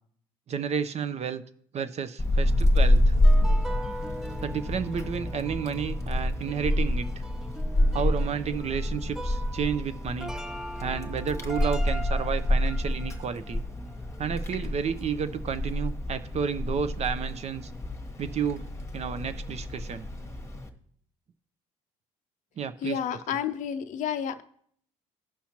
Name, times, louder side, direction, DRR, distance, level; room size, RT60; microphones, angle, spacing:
voice 1, 0.5-1.4 1.7-3.1 4.4-7.2 7.9-10.3 10.8-13.6 14.2-17.7 18.2-18.6 18.9-20.1 22.6-23.0 23.3-23.4, right 7 dB, 40° right, 12 dB, 0.6 m, -31 dB
Wind, 2.2-20.7, left 1 dB, 20° left, 1.2 m, -27 dB
sound 1, 3.1-14.5 14.7-14.9, right 1 dB, 5° right, 0.7 m, -42 dB
voice 2, 22.8-24.4, left 8 dB, 50° left, 10 dB, 0.5 m, -30 dB
15.5 x 5.6 x 2.9 m, 0.62 s
hypercardioid pair, 55°, 16 cm